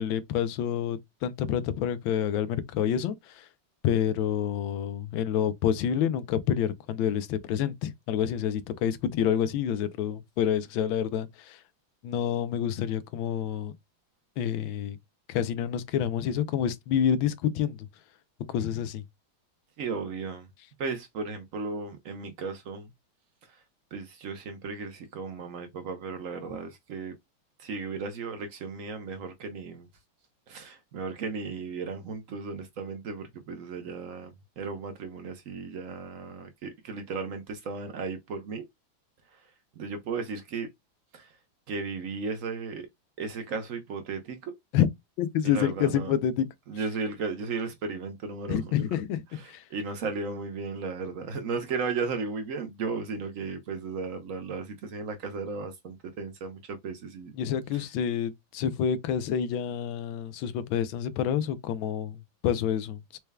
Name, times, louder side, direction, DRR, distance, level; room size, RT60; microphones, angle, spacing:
voice 1, 0.0-3.5 3.8-11.6 12.0-13.7 14.4-15.0 15.3-17.9 18.5-19.0 44.7-44.9 45.2-46.4 48.5-49.6 57.4-63.2, left 9 dB, 90° left, 1.4 m, -28 dB
voice 2, 19.8-20.5 20.8-22.9 23.5-23.6 23.9-27.1 27.6-29.9 30.5-38.7 39.3-39.4 39.8-40.7 41.1-41.3 41.7-42.9 43.2-44.6 45.4-46.1 46.7-48.8 49.4-57.3 57.7-57.8, right 4 dB, 70° right, 0.8 m, -35 dB
4.3 x 3.3 x 2.2 m
omnidirectional pair, 2.1 m